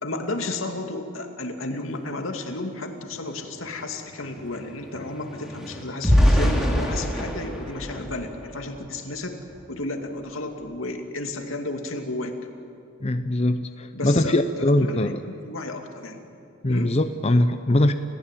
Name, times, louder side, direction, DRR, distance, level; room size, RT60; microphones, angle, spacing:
voice 1, 0.0-9.4 9.7-12.3 13.9-16.2 16.7-16.9, left 2 dB, 85° left, 4 dB, 2.5 m, -32 dB
sound 1, 3.1-3.2 3.5-8.9 9.5-9.7 10.0-10.3, equal, ahead, 3.5 m, -25 dB
voice 2, 13.0-15.2 16.6-17.9, left 1 dB, 30° left, 9 dB, 0.7 m, -21 dB
29.5 x 16.0 x 9.1 m, 2.7 s
head